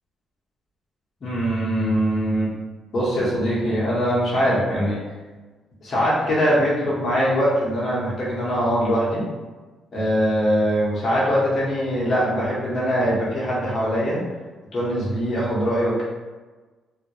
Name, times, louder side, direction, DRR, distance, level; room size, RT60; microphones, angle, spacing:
voice 1, 1.2-2.5 2.9-5.0 5.8-9.2 9.9-14.2 14.7-16.0, equal, 50° left, -7 dB, 0.8 m, -22 dB
2.3 x 2.1 x 2.8 m, 1.3 s
cardioid pair, 90°, 0 cm